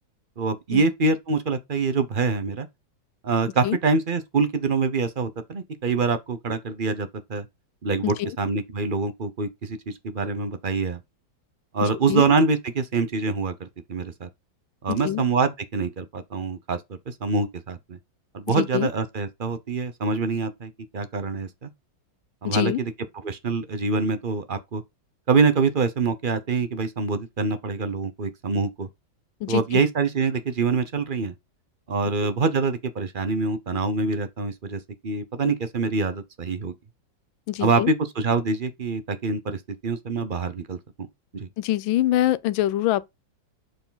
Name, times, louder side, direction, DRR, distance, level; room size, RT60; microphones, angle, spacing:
voice 1, 0.4-2.7 3.2-7.4 7.8-11.0 11.7-14.3 14.8-16.8 17.1-18.0 18.3-21.7 22.4-22.9 23.2-24.8 25.3-28.9 29.5-31.3 31.9-36.7 37.6-40.8 41.3-41.5, right 4 dB, 45° right, 0.6 m, -25 dB
voice 2, 8.0-8.4 11.8-12.2 14.9-15.2 18.5-18.9 22.4-22.8 29.4-29.8 37.5-37.9 41.6-43.1, left 14 dB, 85° left, 1.4 m, -25 dB
8.0 x 4.8 x 4.0 m
omnidirectional pair, 2.1 m